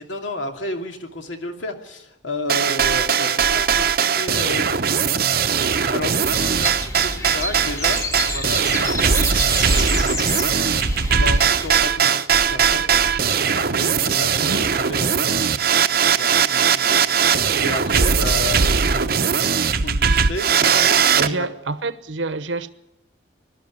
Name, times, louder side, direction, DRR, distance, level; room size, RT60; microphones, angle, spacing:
voice 1, 0.0-5.2 5.9-9.5 11.1-15.7 16.2-17.0 17.3-19.5 19.8-20.5 21.2-21.5, left 2 dB, 75° left, 2.7 m, -32 dB
sound 1, 2.5-21.3, right 7 dB, 50° right, 0.7 m, -19 dB
sound 2, 6.3-11.8, left 1 dB, 15° left, 1.6 m, -28 dB
voice 2, 21.1-22.7, right 3 dB, 75° right, 0.9 m, -27 dB
21.5 x 12.5 x 9.9 m
head